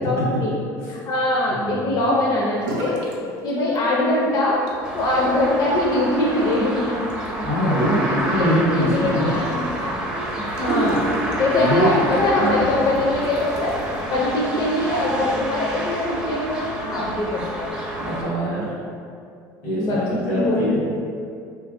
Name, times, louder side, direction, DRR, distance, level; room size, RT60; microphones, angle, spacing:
voice 1, 0.0-0.5 0.9-3.0 3.4-4.6 4.9-7.0 8.0-8.5 8.7-11.1 11.4-13.7 14.1-17.7 19.7-20.0 20.3-20.7, left 1 dB, 45° left, -5 dB, 0.5 m, -22 dB
voice 2, 1.5-2.0 7.4-9.3 11.1-11.2 11.6-11.9 12.3-12.6 18.0-18.7 19.6-20.8, equal, 90° left, -7 dB, 1.2 m, -23 dB
sound 1, 2.6-3.2 3.5-4.1 4.5-14.0, right 2 dB, 90° right, 0.5 m, -33 dB
sound 2, 4.8-18.2, right 1 dB, 10° right, 0.5 m, -29 dB
2.8 x 2.5 x 2.5 m, 2.4 s
supercardioid pair, 100°, 9 cm